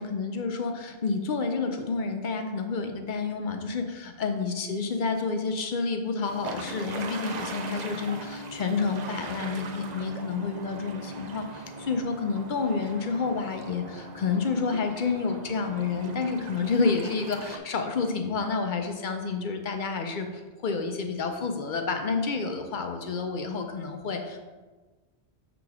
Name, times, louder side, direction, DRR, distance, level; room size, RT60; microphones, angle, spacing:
voice 1, 0.0-24.5, left 4 dB, 55° left, 5 dB, 0.6 m, -29 dB
sound 1, 6.2-17.6, right 2 dB, 55° right, 0.5 m, -40 dB
6.9 x 3.0 x 4.7 m, 1.3 s
omnidirectional pair, 1.1 m